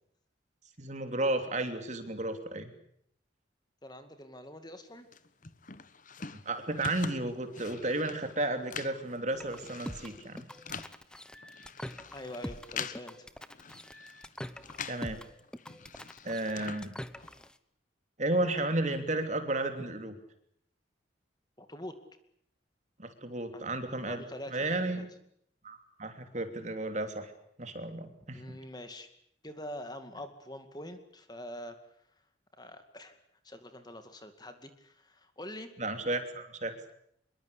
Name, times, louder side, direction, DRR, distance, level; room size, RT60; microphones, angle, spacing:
voice 1, 0.8-2.7 6.4-10.4 14.9-15.2 16.2-16.9 18.2-20.1 23.0-24.2 24.5-25.1 25.6-27.3 27.6-28.4 35.8-36.7, right 2 dB, 35° right, 7 dB, 3.1 m, -33 dB
voice 2, 3.8-5.1 12.1-13.3 21.6-22.0 23.5-23.7 24.1-25.1 28.3-29.1 29.4-31.8 32.6-33.2 33.4-35.7, left 1 dB, 20° left, 8 dB, 2.2 m, -45 dB
sound 1, 5.1-15.1 15.4-17.5, left 6 dB, 40° left, 1.2 m, -45 dB
sound 2, 9.3-17.5, equal, 5° left, 1.0 m, -44 dB
25.5 x 22.5 x 8.3 m, 0.70 s
head